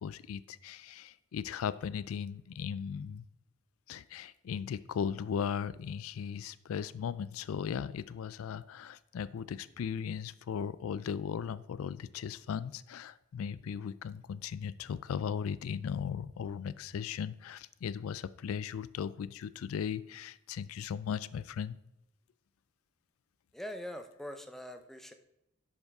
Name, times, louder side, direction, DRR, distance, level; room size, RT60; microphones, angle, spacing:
voice 1, 0.0-3.2 3.9-21.8, left 7 dB, 80° left, 17 dB, 0.3 m, -37 dB
voice 2, 23.5-25.1, equal, ahead, 7 dB, 0.6 m, -43 dB
11.0 x 5.4 x 3.5 m, 0.83 s
head